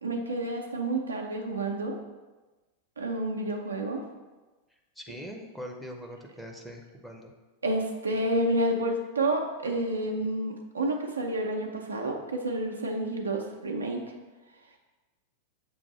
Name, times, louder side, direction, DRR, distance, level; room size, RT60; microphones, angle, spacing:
voice 1, 0.0-2.0 3.0-4.0 7.6-14.0, right 1 dB, 75° right, 1 dB, 0.7 m, -29 dB
voice 2, 5.0-7.3, equal, ahead, 1 dB, 0.7 m, -42 dB
6.9 x 2.6 x 5.5 m, 1.2 s
figure-of-eight pair, 90°, 0 cm